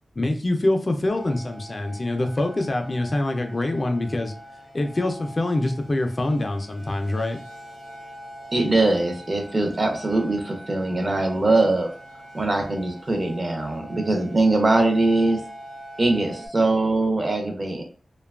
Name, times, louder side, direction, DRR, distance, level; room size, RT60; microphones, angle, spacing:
voice 1, 0.2-4.3 4.7-7.4, left 2 dB, 35° left, 4 dB, 0.3 m, -25 dB
sound 1, 1.1-16.5, equal, 70° right, 0.7 m, -43 dB
voice 2, 8.5-11.9 12.3-15.4 16.0-17.8, right 2 dB, 35° right, 4 dB, 0.5 m, -22 dB
2.8 x 2.2 x 2.3 m, 0.39 s
wide cardioid pair, 100°, 0 cm